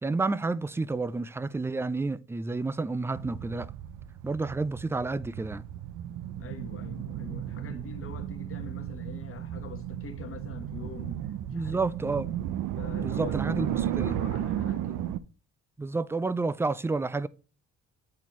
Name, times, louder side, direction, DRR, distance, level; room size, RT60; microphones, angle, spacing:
voice 1, 0.0-3.7 4.2-5.6 7.7-7.8 11.5-12.3 13.0-14.1 15.8-17.3, right 3 dB, 10° right, 0.3 m, -30 dB
sound 1, 3.2-15.2, right 11 dB, 80° right, 0.6 m, -34 dB
voice 2, 6.4-12.2 12.8-15.1, left 6 dB, 45° left, 1.2 m, -44 dB
8.7 x 4.2 x 3.0 m
cardioid pair, 90°, 30 cm